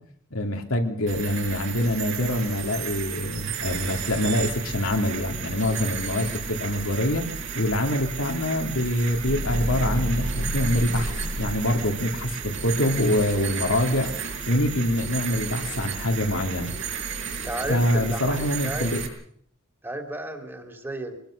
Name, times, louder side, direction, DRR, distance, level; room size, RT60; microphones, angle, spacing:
voice 1, 0.3-7.2 7.5-14.1 14.5-16.7 17.7-19.0, left 1 dB, 75° left, 3 dB, 2.9 m, -25 dB
sound 1, 1.1-19.1, right 6 dB, 65° right, 5.8 m, -33 dB
sound 2, 9.1-12.4, equal, 50° right, 3.4 m, -30 dB
voice 2, 17.4-19.0 19.8-21.2, right 1 dB, 10° right, 5 dB, 3.0 m, -33 dB
24.0 x 20.5 x 6.6 m, 0.65 s
head